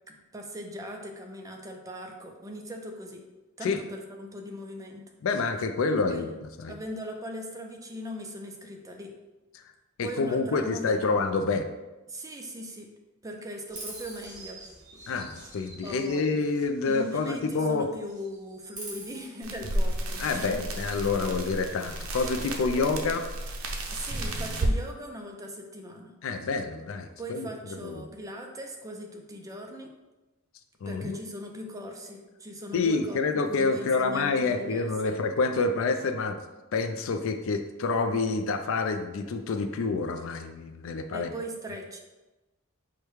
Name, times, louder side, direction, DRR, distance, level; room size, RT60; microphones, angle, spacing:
voice 1, 0.1-3.3 3.6-5.0 5.9-6.3 6.7-9.2 10.0-11.2 12.1-12.9 13.2-14.6 15.8-16.4 16.9-20.7 22.8-22.9 23.9-26.1 27.2-29.9 30.9-33.2 33.5-35.2 41.1-42.0, equal, 15° right, 2 dB, 0.4 m, -40 dB
voice 2, 5.2-6.3 6.6-6.7 9.5-9.6 10.0-11.6 15.1-17.9 20.2-23.2 26.2-28.0 30.8-31.2 32.7-36.4 36.7-41.3, left 4 dB, 65° left, 7 dB, 0.4 m, -28 dB
Chirp tweet, 13.7-17.7 18.0-19.2, right 2 dB, 35° right, 1.3 m, -45 dB
sound 1, 19.4-24.8, right 1 dB, 80° right, 0.6 m, -32 dB
4.9 x 2.2 x 4.5 m, 1.1 s
head